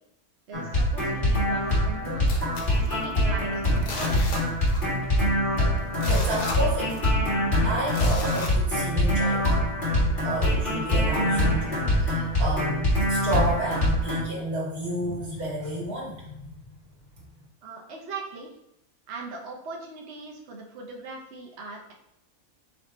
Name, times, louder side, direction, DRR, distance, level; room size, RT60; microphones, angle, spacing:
sound 1, 0.5-14.2, left 1 dB, 35° left, 1.7 m, -24 dB
voice 1, 0.5-2.3 2.8-4.2 17.6-18.5 19.1-21.9, right 3 dB, 55° right, -1 dB, 0.9 m, -39 dB
sound 2, 2.3-3.4 3.8-5.0 5.2-5.3 5.8-7.3 7.9-9.1 9.6-9.7, left 2 dB, 65° left, 1.2 m, -35 dB
voice 2, 6.0-7.0 7.6-9.4 10.2-16.5, right 1 dB, 90° right, -4 dB, 2.1 m, -31 dB
4.2 x 2.8 x 4.3 m, 0.81 s
omnidirectional pair, 1.5 m